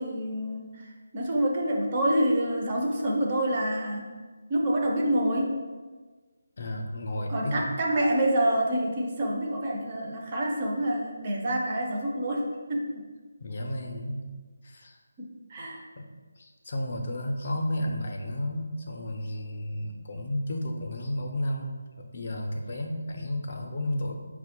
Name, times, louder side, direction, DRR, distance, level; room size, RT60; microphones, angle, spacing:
voice 1, 0.0-4.1 4.5-5.6 7.3-13.0 15.2-15.9, right 1 dB, 25° right, -1 dB, 0.4 m, -27 dB
voice 2, 6.6-7.7 13.4-14.2 14.6-15.0 15.9-16.1 16.4-24.1, left 1 dB, 40° left, 2 dB, 0.5 m, -32 dB
4.4 x 2.1 x 4.3 m, 1.4 s
figure-of-eight pair, 170°, 0 cm